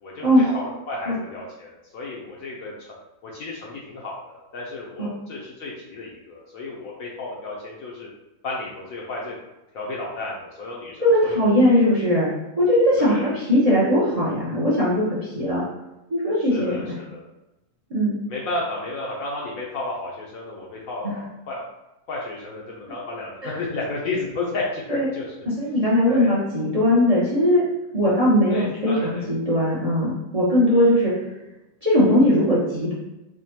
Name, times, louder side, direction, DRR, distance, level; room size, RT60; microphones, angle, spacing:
voice 1, 0.0-2.9 3.2-8.1 8.4-9.4 9.7-11.5 13.0-13.3 16.4-17.2 18.3-21.1 21.5-21.6 22.1-25.4 26.1-26.3 28.5-29.3 30.7-30.9, left 2 dB, 70° left, -3 dB, 0.8 m, -32 dB
voice 2, 11.0-12.3 12.6-15.6 16.1-16.8 17.9-18.2 21.0-21.1 23.4-23.5 24.9-25.0 25.6-27.6 27.9-28.9 29.3-31.1 31.8-32.9, left 1 dB, 60° right, -8 dB, 0.4 m, -19 dB
5.0 x 2.1 x 2.8 m, 0.96 s
omnidirectional pair, 2.1 m